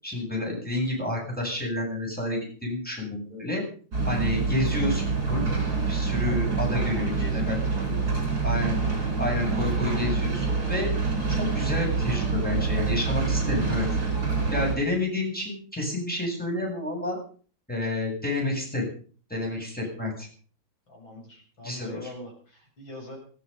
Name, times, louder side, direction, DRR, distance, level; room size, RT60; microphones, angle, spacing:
voice 1, 0.0-3.6 4.1-5.5 5.9-7.1 7.5-7.6 7.8-7.9 8.4-8.8 9.2-10.9 11.3-13.9 14.5-17.2 17.7-18.9 19.3-20.3 21.6-22.0, left 2 dB, 5° left, 0 dB, 8.0 m, -29 dB
sound 1, 3.9-14.8, right 4 dB, 50° right, 6.2 m, -26 dB
voice 2, 6.2-8.3 20.9-23.2, left 1 dB, 70° left, -1 dB, 8.3 m, -42 dB
18.5 x 14.0 x 5.6 m, 0.43 s
omnidirectional pair, 2.2 m